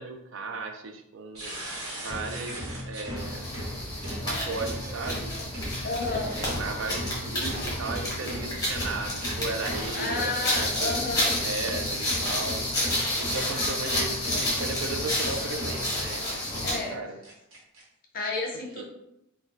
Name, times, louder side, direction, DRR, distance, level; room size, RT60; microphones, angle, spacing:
voice 1, 0.0-1.5 1.9-3.5 4.2-5.3 6.1-12.9 13.2-17.2 18.8-18.9, right 3 dB, 65° right, 6 dB, 0.4 m, -36 dB
sound 1, 1.3-16.4 16.8-16.9 17.2-17.8, equal, 85° right, 1.1 m, -38 dB
sound 2, 3.2-16.9, left 1 dB, 20° left, 0.9 m, -30 dB
voice 2, 5.8-6.3 9.9-11.3 16.6-17.0 18.1-18.8, left 3 dB, 40° left, 0 dB, 0.6 m, -31 dB
2.5 x 2.2 x 3.8 m, 0.85 s
head